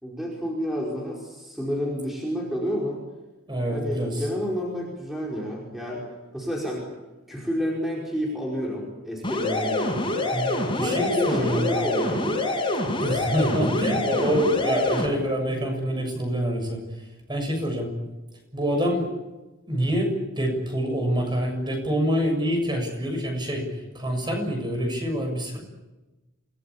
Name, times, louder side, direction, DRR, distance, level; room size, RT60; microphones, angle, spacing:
voice 1, 0.0-3.0 3.7-6.0 6.3-6.8 7.3-9.9 10.7-12.4 13.5-13.7, equal, ahead, -3 dB, 5.1 m, -30 dB
voice 2, 3.5-4.3 10.3-11.7 13.0-16.8 17.3-17.9 18.5-19.1 19.7-23.7 23.9-25.6, equal, 20° right, 3 dB, 7.1 m, -26 dB
sound 1, 9.2-15.1, left 2 dB, 25° left, 6.0 m, -26 dB
28.5 x 19.0 x 8.6 m, 1.1 s
head